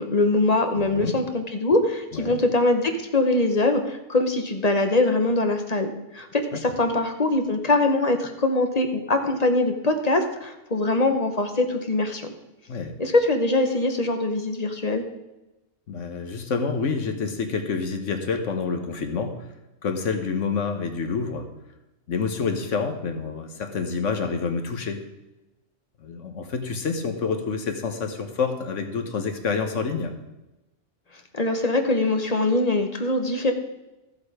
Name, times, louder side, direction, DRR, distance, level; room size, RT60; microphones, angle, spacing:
voice 1, 0.0-12.3 13.0-15.0 31.3-33.5, left 2 dB, 35° left, 6 dB, 1.1 m, -23 dB
voice 2, 0.8-1.2 2.1-2.4 6.5-6.6 12.7-13.0 15.9-19.5 19.8-21.5 22.1-25.0 26.0-30.1, left 5 dB, 80° left, 6 dB, 1.5 m, -28 dB
13.5 x 7.5 x 4.9 m, 1.0 s
omnidirectional pair, 1.3 m